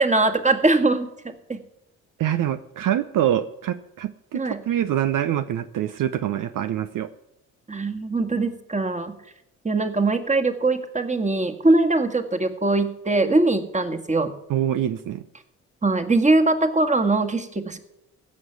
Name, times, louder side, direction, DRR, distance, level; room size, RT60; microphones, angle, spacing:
voice 1, 0.0-1.6 4.3-4.6 7.7-9.1 9.6-14.3 15.8-17.8, right 2 dB, 20° right, 6 dB, 1.9 m, -21 dB
voice 2, 2.2-7.1 14.5-15.2, right 11 dB, 60° right, 11 dB, 0.7 m, -25 dB
15.5 x 6.4 x 8.2 m, 0.84 s
hypercardioid pair, 50°, 36 cm